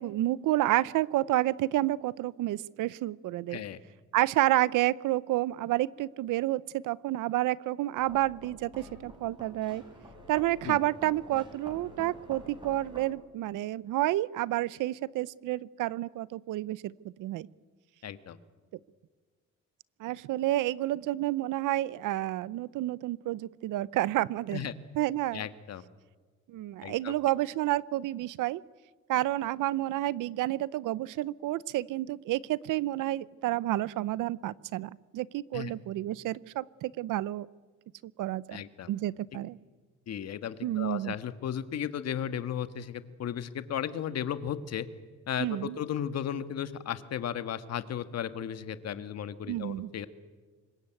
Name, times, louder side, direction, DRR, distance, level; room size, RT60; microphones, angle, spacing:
voice 1, 0.0-3.6 4.1-9.8 10.3-17.5 20.0-24.7 24.9-25.5 26.5-28.6 29.1-37.5 38.2-38.6 38.9-39.6 40.6-41.1 45.4-45.8 49.5-49.9, right 15 dB, 80° right, 20 dB, 0.7 m, -30 dB
sound 1, 8.0-13.1, equal, 15° right, 5.7 m, -49 dB
voice 2, 18.0-18.4 24.5-24.7 25.3-25.8 26.8-27.1 35.5-35.7 38.5-38.9 40.1-44.9 45.3-50.1, left 9 dB, 55° left, 11 dB, 1.5 m, -35 dB
26.0 x 22.0 x 9.2 m, 1.4 s
cardioid pair, 130°, 31 cm